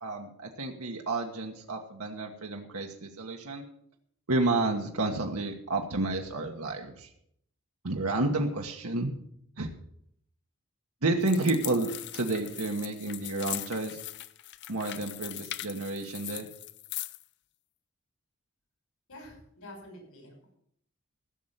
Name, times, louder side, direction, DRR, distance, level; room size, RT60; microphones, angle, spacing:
voice 1, 0.0-3.6 4.3-7.1 7.8-9.1 9.6-9.7 11.0-14.0 14.7-16.5, right 2 dB, 85° right, 2 dB, 1.3 m, -30 dB
sound 1, 11.2-17.2, left 15 dB, 55° left, 0.5 m, -40 dB
voice 2, 19.1-20.6, left 1 dB, 80° left, 2 dB, 5.7 m, -48 dB
15.5 x 6.6 x 7.4 m, 0.68 s
head